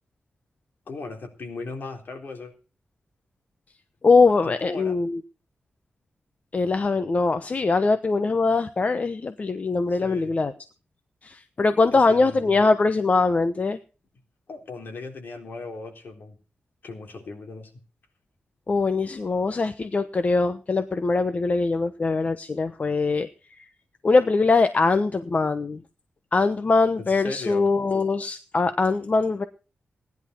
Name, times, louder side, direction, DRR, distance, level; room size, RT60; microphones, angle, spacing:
voice 1, 0.9-2.5 4.4-5.0 9.9-10.3 11.9-12.7 14.5-16.4 16.8-17.7 27.0-27.7, left 3 dB, 65° left, 3 dB, 4.0 m, -37 dB
voice 2, 4.0-5.2 6.5-10.5 11.2-13.8 18.7-23.3 23.6-23.7 24.0-25.8 26.3-29.4, left 3 dB, 40° left, 10 dB, 1.0 m, -22 dB
18.5 x 11.0 x 4.6 m, 0.35 s
wide cardioid pair, 90°, 4 cm